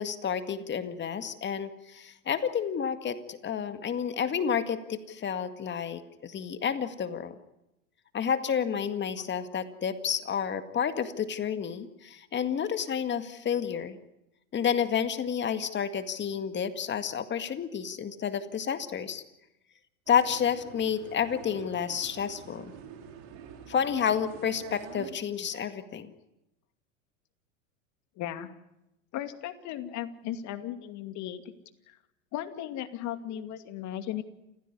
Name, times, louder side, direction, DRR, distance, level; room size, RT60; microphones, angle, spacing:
voice 1, 0.0-7.4 8.1-14.0 14.5-19.2 20.1-22.7 23.7-26.1, left 7 dB, 25° left, 9 dB, 2.0 m, -30 dB
sound 1, 20.1-25.1, right 8 dB, 55° right, 4.9 m, -47 dB
voice 2, 28.2-28.5 29.1-31.4 31.9-32.0 32.3-34.2, left 11 dB, 45° left, 8 dB, 2.5 m, -36 dB
28.5 x 15.5 x 10.0 m, 0.90 s
hypercardioid pair, 100°, 40 cm